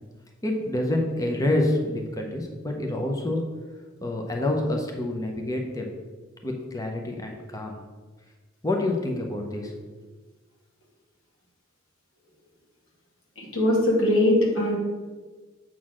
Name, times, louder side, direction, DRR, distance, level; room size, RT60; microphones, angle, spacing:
voice 1, 0.4-3.4 4.0-5.9 6.4-7.8 8.6-9.7, left 1 dB, 20° left, 2 dB, 0.8 m, -27 dB
voice 2, 13.4-14.8, left 1 dB, 90° left, -2 dB, 2.1 m, -21 dB
7.4 x 3.9 x 6.2 m, 1.4 s
head